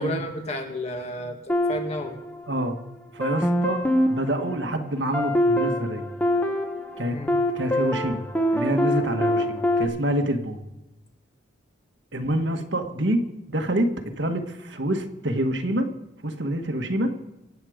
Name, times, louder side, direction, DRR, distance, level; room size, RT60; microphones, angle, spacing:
voice 1, 0.0-2.2 7.1-7.3, equal, 35° left, 3 dB, 2.1 m, -32 dB
sound 1, 1.5-2.8 3.2-9.8, left 1 dB, 10° left, 1.3 m, -25 dB
voice 2, 2.5-2.8 3.1-3.8 4.1-6.0 7.0-7.2 7.5-8.2 8.5-10.6 12.1-13.2 13.5-13.9 14.2-15.9 16.2-17.1, right 1 dB, 65° right, 5 dB, 1.6 m, -26 dB
25.5 x 8.7 x 5.1 m, 1.0 s
head